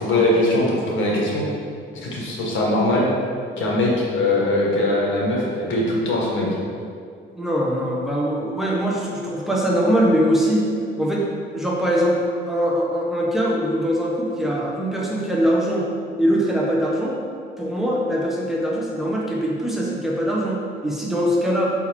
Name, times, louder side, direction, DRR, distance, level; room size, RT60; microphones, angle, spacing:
voice 1, 0.0-1.5 1.9-3.1 3.6-6.5, left 1 dB, 75° left, -4 dB, 1.6 m, -21 dB
voice 2, 7.3-10.7 11.0-11.3 11.5-15.8 16.2-17.1 17.6-21.7, equal, ahead, -4 dB, 1.3 m, -22 dB
5.7 x 4.5 x 4.5 m, 2.2 s
cardioid pair, 90°, 20 cm